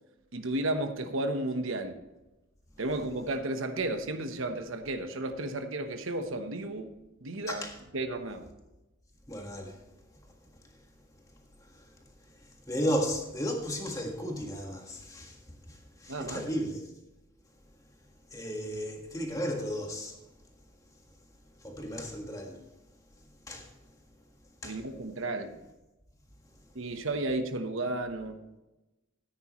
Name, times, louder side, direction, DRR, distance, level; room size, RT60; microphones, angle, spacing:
voice 1, 0.3-2.0 2.8-7.0 7.2-7.7 7.9-8.5 16.1-16.4 24.6-25.6 26.7-28.4, right 2 dB, 75° right, 1.1 m, -33 dB
voice 2, 9.3-9.8 12.7-15.4 15.7-16.8 18.3-20.1 21.6-22.6 23.5-23.7 24.6-24.8, equal, 15° left, 1.6 m, -34 dB
14.0 x 9.8 x 3.1 m
head